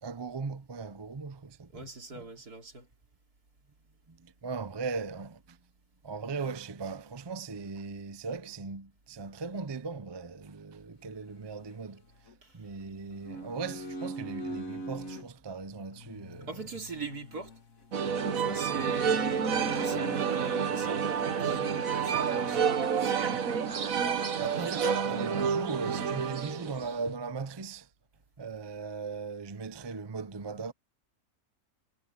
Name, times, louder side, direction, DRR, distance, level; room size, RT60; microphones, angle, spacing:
voice 1, 0.0-1.9 2.1-2.2 4.1-5.6 6.0-12.0 12.5-16.6 24.4-27.9 28.4-30.7, right 4 dB, 25° right, 0.6 m, -38 dB
voice 2, 1.7-2.9 12.4-12.6 16.5-17.6 18.3-23.5 24.5-25.0, right 3 dB, 80° right, 4.2 m, -41 dB
sound 1, 11.1-12.3 12.8-15.3 15.9-20.9 21.8-23.0 23.3-23.4 23.7-24.7, right 1 dB, 60° left, 2.5 m, -44 dB
sound 2, 17.9-27.1, right 7 dB, 65° right, 1.6 m, -29 dB
omnidirectional pair, 1.6 m